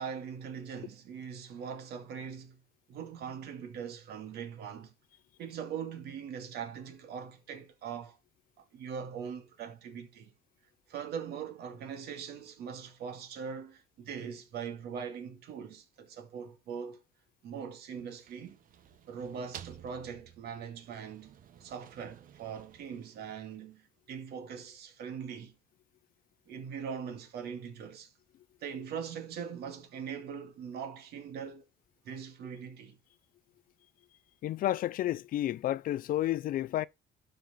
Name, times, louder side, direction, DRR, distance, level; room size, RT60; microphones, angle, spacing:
voice 1, 0.0-2.6 2.9-4.9 5.4-8.2 8.6-10.3 10.9-17.0 17.4-18.6 19.1-25.5 26.5-28.1 28.6-31.6 32.0-33.0, right 7 dB, 70° right, 2.4 m, -41 dB
sound 1, 17.9-23.9, right 10 dB, 55° right, 1.0 m, -54 dB
voice 2, 34.4-36.9, left 13 dB, 60° left, 0.4 m, -31 dB
12.0 x 4.4 x 4.4 m
cardioid pair, 110°, 17 cm